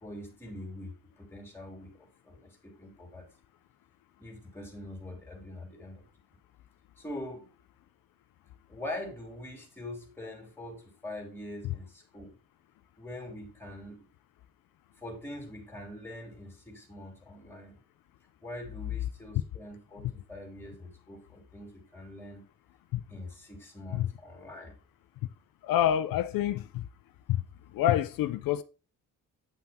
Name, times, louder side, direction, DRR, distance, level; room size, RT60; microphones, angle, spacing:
voice 1, 0.0-3.3 4.2-6.0 7.0-7.5 8.7-12.3 13.0-14.0 15.0-17.8 18.4-22.4 23.1-24.8, left 1 dB, 5° left, 3.3 m, -43 dB
voice 2, 25.6-26.8 27.3-27.4 27.7-28.6, left 11 dB, 80° left, 0.7 m, -27 dB
9.3 x 5.7 x 4.3 m
cardioid pair, 155°, 34 cm